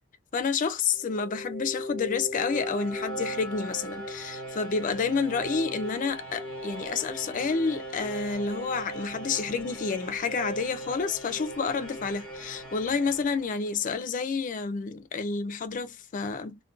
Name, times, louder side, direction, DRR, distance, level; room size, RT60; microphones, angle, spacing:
voice 1, 0.3-16.6, left 5 dB, 40° left, 0.4 m, -29 dB
sound 1, 0.9-14.0, right 1 dB, 5° left, 0.8 m, -38 dB
2.4 x 2.1 x 2.4 m
head